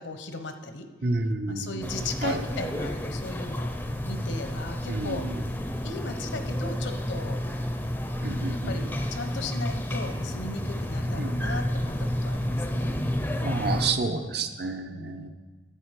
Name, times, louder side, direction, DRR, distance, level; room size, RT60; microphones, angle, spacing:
voice 1, 0.0-0.9 1.4-3.8 4.1-5.2 5.8-7.4 8.2-11.9 12.2-13.0 14.1-14.2 14.9-15.3, left 3 dB, 70° left, 7 dB, 0.8 m, -37 dB
voice 2, 1.0-1.9 2.2-2.4 4.9-5.4 8.2-9.0 11.2-11.6 13.4-15.3, right 3 dB, 55° right, 6 dB, 0.7 m, -30 dB
sound 1, 1.8-13.9, equal, 10° left, 0.5 m, -30 dB
10.0 x 8.3 x 4.7 m, 1.4 s
head